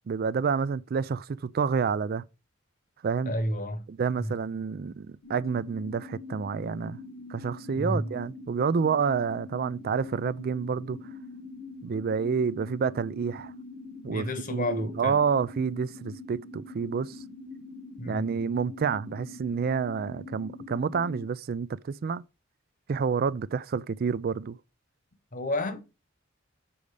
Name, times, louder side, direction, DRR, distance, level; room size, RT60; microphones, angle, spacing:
voice 1, 0.1-2.2 3.0-3.3 3.9-7.0 7.3-11.0 11.8-13.5 14.0-17.2 18.1-22.2 22.9-24.6, right 6 dB, 50° right, 0.4 m, -29 dB
voice 2, 3.2-3.8 4.2-4.3 7.8-8.1 14.1-15.2 18.0-18.3 25.3-25.8, left 1 dB, 40° left, 1.1 m, -31 dB
sound 1, 5.2-21.3, left 2 dB, 60° left, 1.2 m, -44 dB
7.0 x 5.2 x 4.9 m
head